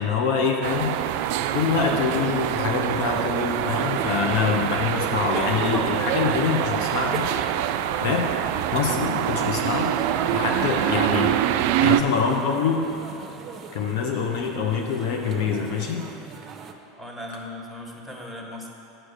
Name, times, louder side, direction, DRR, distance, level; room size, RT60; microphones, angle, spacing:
voice 1, 0.0-7.3 8.0-8.3 8.7-9.9 10.3-11.3 11.8-12.8 13.7-16.0, left 5 dB, 65° left, 2 dB, 0.8 m, -25 dB
sound 1, 0.6-12.0, right 11 dB, 65° right, 0.3 m, -25 dB
sound 2, 2.9-16.7, right 5 dB, 35° right, 0.7 m, -37 dB
voice 2, 3.6-4.0 17.0-18.7, left 1 dB, ahead, -1 dB, 1.4 m, -37 dB
7.7 x 4.9 x 6.7 m, 2.9 s
hypercardioid pair, 90°, 0 cm